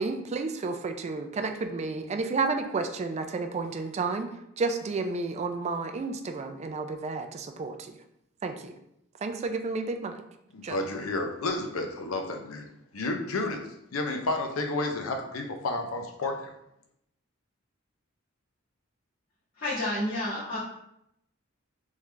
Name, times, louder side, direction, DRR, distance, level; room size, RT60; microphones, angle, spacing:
voice 1, 0.0-4.3 4.6-7.9 8.4-8.7 9.2-10.2 10.6-10.8, right 3 dB, 35° right, 7 dB, 0.3 m, -31 dB
voice 2, 10.5-16.5, left 2 dB, 85° left, 4 dB, 0.6 m, -31 dB
voice 3, 19.6-20.6, left 1 dB, 60° left, -12 dB, 1.5 m, -30 dB
3.6 x 3.2 x 3.2 m, 0.79 s
head